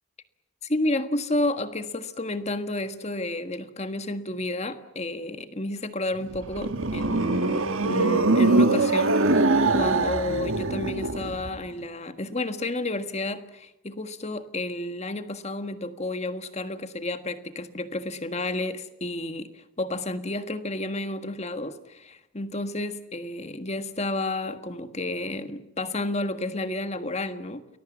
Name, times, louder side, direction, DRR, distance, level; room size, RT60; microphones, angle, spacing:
voice 1, 0.6-9.4 9.7-27.7, left 2 dB, 30° left, 10 dB, 1.5 m, -31 dB
sound 1, 6.2-11.6, right 2 dB, 70° right, 1.9 m, -23 dB
30.0 x 21.0 x 7.3 m, 0.88 s
head